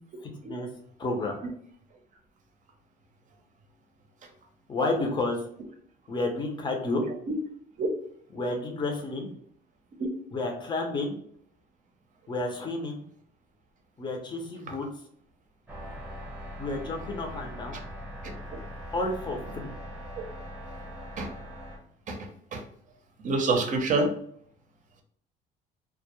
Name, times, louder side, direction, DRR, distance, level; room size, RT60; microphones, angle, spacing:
voice 1, 0.2-0.7 1.0-1.4 4.7-5.4 6.1-7.0 8.3-9.3 10.3-11.2 12.3-13.0 14.0-14.9 16.6-17.8 18.9-19.7, left 2 dB, 25° left, 1 dB, 0.6 m, -31 dB
voice 2, 7.0-7.4 7.8-7.9 10.0-10.1 18.2-18.3 20.2-20.3 21.2-21.3 22.1-22.6 23.2-24.1, right 3 dB, 50° right, 4 dB, 0.6 m, -27 dB
sound 1, 15.7-21.8, equal, 10° right, 0.8 m, -41 dB
2.3 x 2.0 x 2.9 m, 0.63 s
cardioid pair, 110°, 17 cm